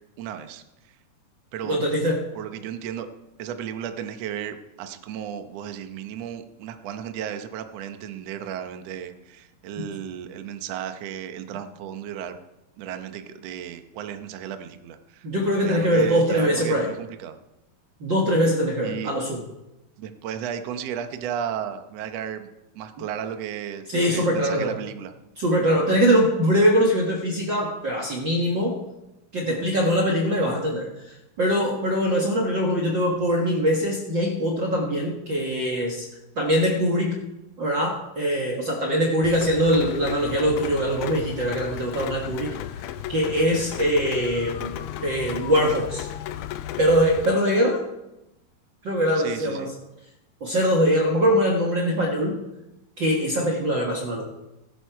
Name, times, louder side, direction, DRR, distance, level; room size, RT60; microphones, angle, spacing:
voice 1, 0.2-1.0 1.5-1.8 2.3-3.1 3.4-12.4 12.8-15.3 15.6-17.4 18.8-19.1 20.0-22.5 22.7-25.1 49.2-49.7, right 9 dB, 80° right, 8 dB, 1.4 m, -34 dB
voice 2, 1.6-2.2 9.8-9.9 15.2-16.9 18.0-19.4 23.9-24.8 25.4-28.8 29.3-30.9 31.4-36.0 36.3-37.2 37.6-42.5 43.1-44.7 45.0-46.1 46.8-47.8 48.8-49.7 50.4-52.4 53.0-54.2, equal, 50° right, -1 dB, 1.5 m, -22 dB
Rain, 39.2-47.3, left 11 dB, 80° left, 1.8 m, -35 dB
15.5 x 11.5 x 4.6 m, 0.94 s
omnidirectional pair, 4.3 m